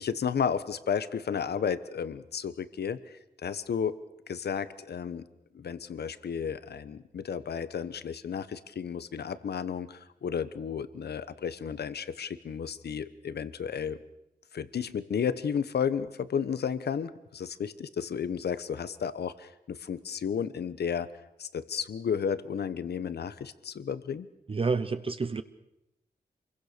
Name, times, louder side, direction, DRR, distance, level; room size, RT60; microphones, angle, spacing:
voice 1, 0.0-4.0 4.3-5.3 5.5-14.0 14.5-21.1 21.4-24.3, left 7 dB, 90° left, 14 dB, 1.1 m, -33 dB
voice 2, 24.5-25.4, right 4 dB, 35° right, 10 dB, 0.9 m, -29 dB
28.0 x 22.5 x 6.8 m, 0.86 s
wide cardioid pair, 175°, 16 cm